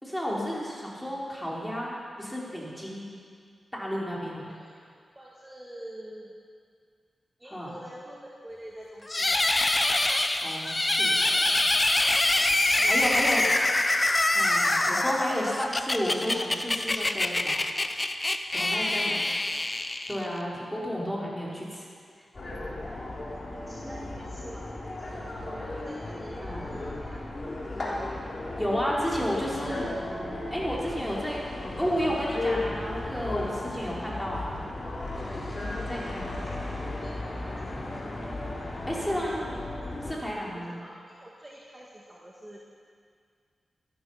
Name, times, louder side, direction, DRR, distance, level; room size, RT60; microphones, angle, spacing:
voice 1, 0.0-3.1 3.7-4.6 7.5-7.7 10.4-11.8 12.8-13.4 14.3-17.6 18.5-19.2 20.1-21.9 26.4-26.6 28.6-29.9 30.5-31.5 31.8-34.7 35.9-36.4 38.9-39.5 40.0-40.8, equal, 5° left, -5 dB, 4.6 m, -32 dB
voice 2, 4.4-4.8 5.1-6.4 7.4-9.5 12.7-13.4 18.5-19.2 23.1-25.1 25.6-27.9 35.5-37.9 40.4-42.7, right 1 dB, 20° right, -3 dB, 2.1 m, -47 dB
sound 1, 9.1-20.4, left 2 dB, 30° left, 0.8 m, -25 dB
sound 2, 22.3-40.1, left 2 dB, 45° left, 3.5 m, -35 dB
13.0 x 12.5 x 5.9 m, 2.1 s
cardioid pair, 45°, 0 cm